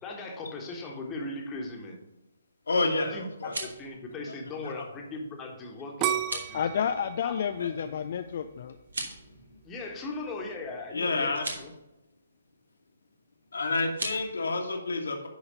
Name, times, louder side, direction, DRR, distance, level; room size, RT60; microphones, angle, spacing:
voice 1, 0.0-2.0 2.9-6.9 7.2-7.3 9.6-11.7, left 2 dB, 15° left, 0 dB, 1.5 m, -38 dB
voice 2, 2.7-3.5 4.3-4.4 4.6-4.7 7.6-7.7 9.3-9.4 10.9-11.4 13.5-15.3, left 3 dB, 65° left, 3 dB, 1.5 m, -29 dB
sound 1, 3.3-3.9 6.2-6.6 8.8-9.3 11.3-11.6 13.9-14.2, right 2 dB, 65° right, 1.6 m, -36 dB
sound 2, 6.0-8.9 9.4-9.9, right 11 dB, 25° right, 0.3 m, -33 dB
voice 3, 6.5-8.8, left 8 dB, 45° left, 7 dB, 0.4 m, -30 dB
10.5 x 4.0 x 5.3 m, 0.96 s
figure-of-eight pair, 130°, 0 cm